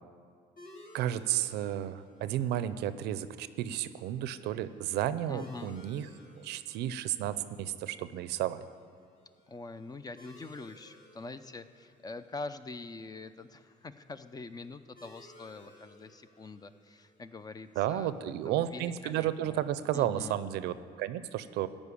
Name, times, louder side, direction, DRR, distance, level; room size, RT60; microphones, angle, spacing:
sound 1, 0.6-19.7, left 1 dB, 55° left, 3.4 m, -59 dB
voice 1, 0.9-6.1 6.4-8.6 17.8-21.7, right 12 dB, 80° right, 14 dB, 0.5 m, -32 dB
voice 2, 5.3-5.8 9.5-19.6 19.9-20.4, left 3 dB, 20° left, 12 dB, 0.5 m, -44 dB
14.5 x 5.3 x 8.4 m, 2.1 s
cardioid pair, 110°, 17 cm